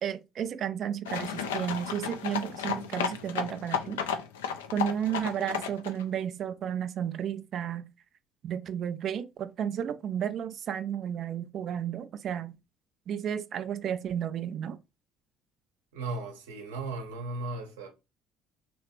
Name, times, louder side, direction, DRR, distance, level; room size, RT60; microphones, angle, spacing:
voice 1, 0.0-4.0 4.7-7.9 8.4-12.5 13.1-14.8, right 9 dB, 50° right, 0.4 m, -32 dB
sound 1, 1.1-6.0, left 7 dB, 75° left, 0.4 m, -33 dB
voice 2, 15.9-17.9, right 3 dB, 70° right, 0.9 m, -36 dB
3.2 x 3.1 x 2.9 m
figure-of-eight pair, 55°, 0 cm